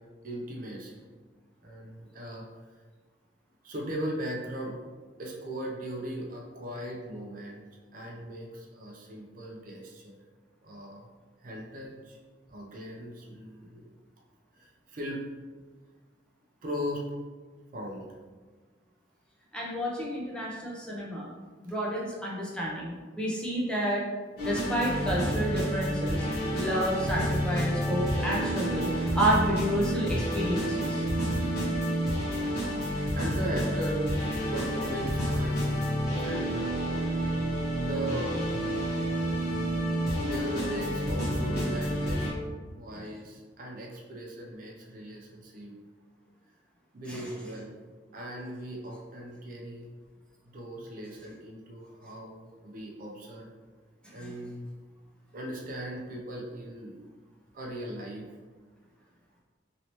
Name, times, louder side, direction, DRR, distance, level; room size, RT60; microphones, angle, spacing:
voice 1, 0.2-1.0 1.6-2.4 3.6-10.2 10.6-11.1 11.4-12.2 12.5-13.9 14.6-15.2 16.6-17.2 17.7-18.2 33.2-35.8 36.2-36.7 37.8-38.3 40.2-42.3 42.7-45.7 46.9-47.7 48.1-49.9 50.4-53.5 54.1-54.8 55.3-57.0 57.5-58.3, right 1 dB, 45° right, -1 dB, 0.5 m, -38 dB
voice 2, 19.5-21.3 21.6-24.1 24.4-26.3 26.5-31.0 42.9-43.1 47.1-47.3 54.0-54.3, right 1 dB, 5° left, -5 dB, 0.6 m, -30 dB
sound 1, 24.4-42.3, equal, 55° left, 1.2 m, -29 dB
3.0 x 2.8 x 2.9 m, 1.4 s
head